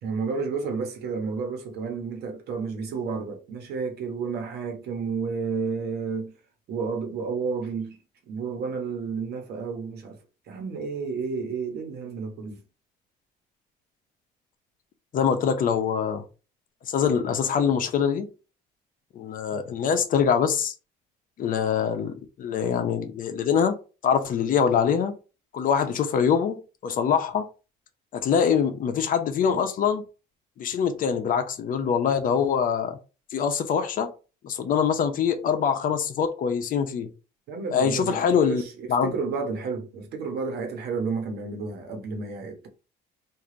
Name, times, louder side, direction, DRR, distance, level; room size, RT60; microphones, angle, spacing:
voice 1, 0.0-6.3 6.7-8.0 8.3-10.2 10.5-12.6 37.5-42.7, right 5 dB, 70° right, 1.2 m, -31 dB
voice 2, 15.1-16.2 16.9-18.3 19.1-20.7 21.4-23.8 24.0-25.2 25.5-27.4 28.1-30.0 30.6-33.0 33.3-34.1 34.4-37.1 37.7-38.6 38.9-39.1, left 7 dB, 55° left, 0.8 m, -24 dB
3.2 x 2.7 x 3.8 m
cardioid pair, 110°, 17 cm